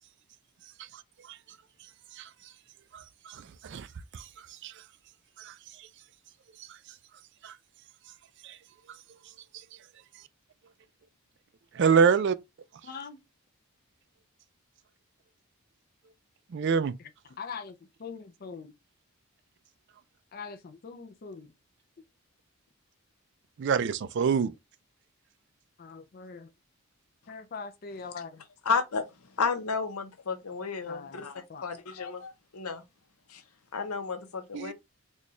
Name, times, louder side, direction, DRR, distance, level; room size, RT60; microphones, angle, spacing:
voice 1, 2.9-3.9 4.1-4.7 5.4-5.9 6.7-6.8 7.4-7.6 8.4-8.6 11.7-12.4 16.5-16.9 23.6-24.5 34.5-34.7, right 6 dB, 50° right, 0.3 m, -27 dB
voice 2, 12.8-13.2 17.0-17.1 17.4-18.7 20.3-21.5 22.0-22.1 25.8-26.5 27.3-28.4 30.9-31.7, left 5 dB, 45° left, 0.4 m, -42 dB
voice 3, 28.7-29.0 29.4-32.8 33.3-33.4 33.7-34.7, left 5 dB, 80° left, 0.8 m, -32 dB
4.2 x 2.3 x 3.1 m
head